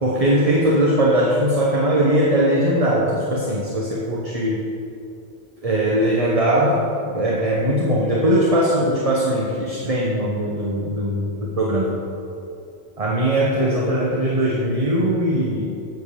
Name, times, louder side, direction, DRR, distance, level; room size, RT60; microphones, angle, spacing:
voice 1, 0.0-4.5 5.6-12.0 13.0-15.9, right 1 dB, 30° right, -4 dB, 1.1 m, -20 dB
8.2 x 7.2 x 6.6 m, 2.6 s
omnidirectional pair, 1.3 m